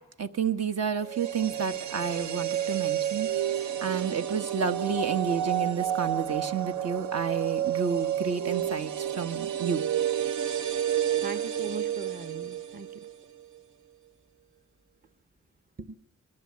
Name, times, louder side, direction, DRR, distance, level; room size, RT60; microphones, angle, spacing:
voice 1, 0.2-3.3 3.6-9.8, right 6 dB, 55° right, 8 dB, 1.3 m, -30 dB
sound 1, 1.0-13.2 13.4-13.5, right 10 dB, 70° right, 0.9 m, -30 dB
voice 2, 11.2-13.1 15.8-15.9, right 3 dB, 30° right, 10 dB, 1.0 m, -40 dB
27.0 x 21.0 x 8.5 m, 0.99 s
wide cardioid pair, 165°, 30 cm